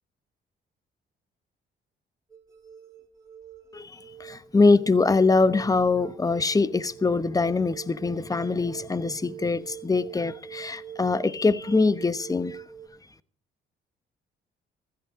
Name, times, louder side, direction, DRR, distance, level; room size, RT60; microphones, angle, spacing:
sound 1, 2.3-12.9, right 9 dB, 15° right, 7.4 m, -44 dB
voice 1, 3.7-12.6, left 3 dB, 15° left, 1.0 m, -23 dB
15.5 x 14.5 x 5.1 m
cardioid pair, 90°, 20 cm